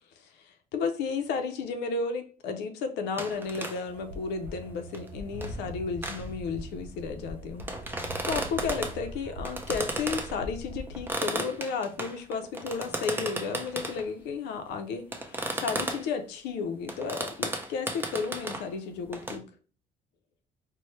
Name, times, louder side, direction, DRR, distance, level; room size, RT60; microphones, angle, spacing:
voice 1, 0.2-19.4, left 5 dB, 85° left, 0.5 m, -33 dB
sound 1, 3.2-3.8 4.1-4.2 4.6-4.7 4.9-5.6 6.0-6.3 6.8-6.9 7.6-9.0 9.4-10.4 10.9-14.1 15.1-16.1 16.9-18.7 19.1-19.4, right 2 dB, 10° right, 0.5 m, -34 dB
sound 2, 3.8-11.1, equal, 80° right, 0.6 m, -42 dB
4.2 x 2.0 x 3.0 m
cardioid pair, 110°, 17 cm